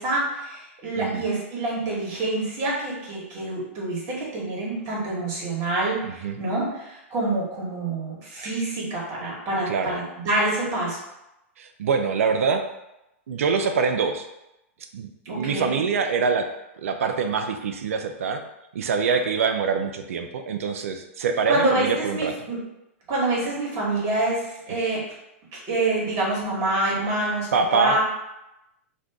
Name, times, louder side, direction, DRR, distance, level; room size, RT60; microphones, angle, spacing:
voice 1, 0.0-11.0 15.2-15.8 21.5-22.6 23.1-25.0 25.7-28.0, right 2 dB, 40° right, -4 dB, 1.3 m, -26 dB
voice 2, 6.0-6.4 9.7-10.0 11.6-12.7 13.3-14.3 14.9-16.5 16.8-18.4 18.7-22.3 27.5-28.0, right 5 dB, 80° right, 6 dB, 0.3 m, -24 dB
2.5 x 2.2 x 3.5 m, 0.89 s
hypercardioid pair, 115°, 7 cm